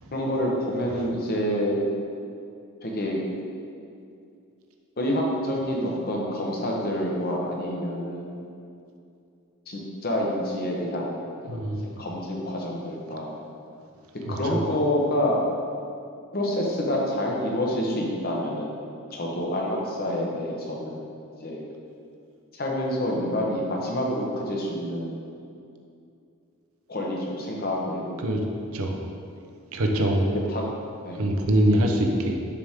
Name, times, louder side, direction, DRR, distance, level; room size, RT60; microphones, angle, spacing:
voice 1, 0.1-1.8 2.8-3.2 5.0-8.5 9.7-11.6 12.0-13.3 14.3-15.4 16.3-18.8 19.1-21.1 21.4-21.6 22.5-25.3 26.9-28.2 30.5-30.6 31.0-31.2, left 1 dB, 40° left, -2 dB, 1.0 m, -27 dB
voice 2, 11.5-11.9 14.3-14.6 28.2-28.4 28.7-29.0 29.7-30.4 31.1-32.3, right 1 dB, 70° right, 2 dB, 0.8 m, -23 dB
6.8 x 6.4 x 3.6 m, 2.5 s
head